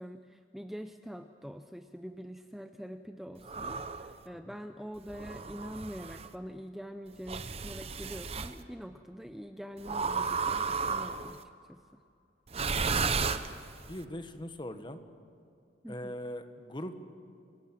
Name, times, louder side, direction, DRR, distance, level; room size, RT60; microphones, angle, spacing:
voice 1, 0.0-11.8 15.8-16.2, equal, ahead, 7 dB, 0.5 m, -44 dB
sound 1, 3.5-4.1 5.1-6.3 7.3-8.5 9.9-11.4 12.5-13.9, right 5 dB, 35° right, 0.8 m, -33 dB
voice 2, 12.6-13.1 13.9-15.0 15.9-17.0, left 1 dB, 25° left, 8 dB, 1.3 m, -41 dB
29.0 x 18.0 x 7.6 m, 2.5 s
head